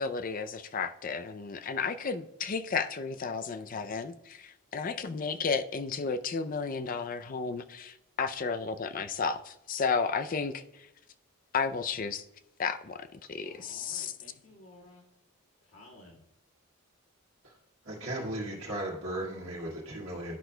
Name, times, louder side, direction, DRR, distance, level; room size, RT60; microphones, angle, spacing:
voice 1, 0.0-10.6 11.5-12.2 12.6-14.1, left 5 dB, 35° left, 0.4 m, -33 dB
voice 2, 13.4-15.1 15.6-16.2, left 1 dB, 65° left, 1.9 m, -54 dB
voice 3, 17.8-20.4, right 1 dB, 65° right, 1.6 m, -36 dB
11.5 x 6.0 x 2.2 m
head